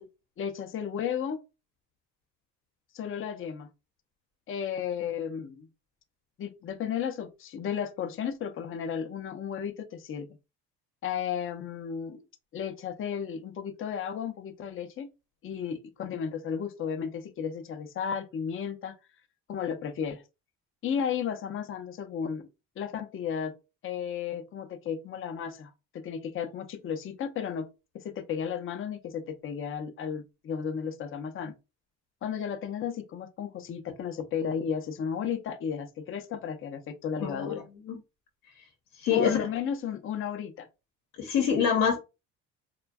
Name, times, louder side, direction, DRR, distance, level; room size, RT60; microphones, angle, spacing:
voice 1, 0.4-1.4 2.9-3.7 4.5-5.7 6.4-10.3 11.0-12.2 12.5-15.1 15.4-18.9 19.5-20.2 20.8-22.5 22.8-23.5 23.8-27.7 28.0-31.5 32.2-37.7 39.1-40.7, left 7 dB, 35° left, 0.5 m, -33 dB
voice 2, 37.2-37.6 37.9-38.0 39.0-39.5 41.2-42.0, left 7 dB, 65° left, 0.8 m, -25 dB
2.5 x 2.2 x 2.3 m
supercardioid pair, 75°, 37 cm